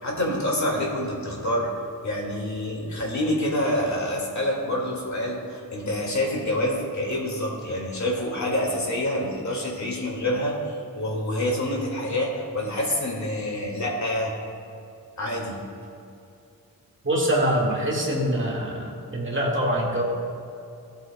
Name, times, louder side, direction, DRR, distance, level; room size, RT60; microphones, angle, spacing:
voice 1, 0.0-1.7 2.0-14.3 15.2-15.6, left 1 dB, 50° left, -2 dB, 2.1 m, -27 dB
voice 2, 17.0-20.0, right 1 dB, 35° right, -3 dB, 1.8 m, -24 dB
16.5 x 7.9 x 2.2 m, 2.6 s
wide cardioid pair, 100°, 36 cm